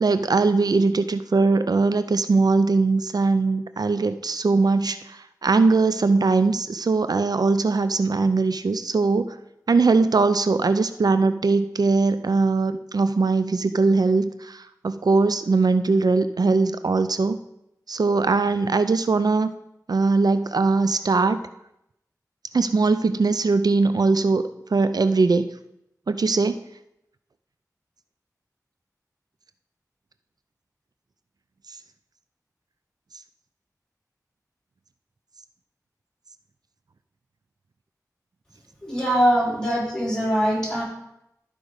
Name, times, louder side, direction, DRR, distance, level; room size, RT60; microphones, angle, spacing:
voice 1, 0.0-9.4 9.7-17.4 17.9-19.5 19.9-21.4 22.5-24.4 24.7-25.5 26.1-26.6, right 3 dB, 75° right, 11 dB, 0.4 m, -21 dB
voice 2, 38.8-40.8, equal, 10° left, -5 dB, 4.0 m, -22 dB
12.5 x 5.0 x 4.8 m, 0.83 s
wide cardioid pair, 45°, 7 cm